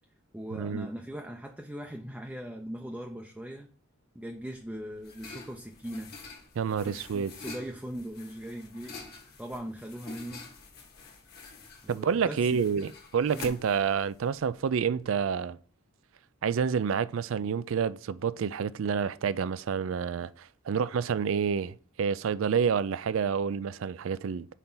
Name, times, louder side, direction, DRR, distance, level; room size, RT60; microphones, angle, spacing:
voice 1, 0.3-3.7 4.1-6.2 6.7-9.0 9.4-10.5 11.8-12.9 13.3-13.5, equal, 5° right, 0.5 m, -40 dB
sound 1, 4.4-15.0, left 3 dB, 50° left, 1.4 m, -48 dB
voice 2, 6.6-7.3 11.9-15.6 16.4-24.5, right 6 dB, 65° right, 0.4 m, -28 dB
5.8 x 4.3 x 3.9 m
head